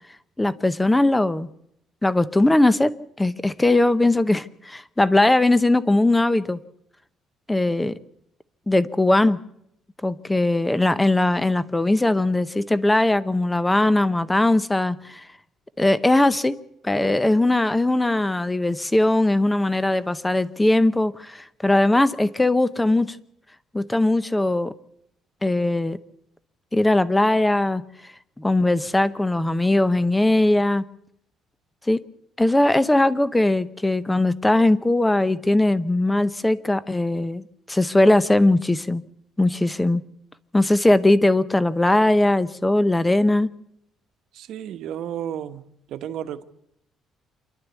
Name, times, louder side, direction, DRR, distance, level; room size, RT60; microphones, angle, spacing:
voice 1, 0.4-1.5 2.0-2.9 3.2-6.6 7.5-7.9 8.7-9.4 10.0-15.2 15.8-16.6 16.8-23.2 23.7-24.7 25.4-26.0 26.7-27.8 28.4-30.8 31.9-32.0 32.4-39.0 39.4-40.0 40.5-43.5, left 2 dB, 5° left, 16 dB, 0.7 m, -20 dB
voice 2, 44.3-46.4, right 10 dB, 60° right, 10 dB, 1.2 m, -33 dB
27.0 x 11.5 x 8.2 m, 0.75 s
cardioid pair, 170°, 0 cm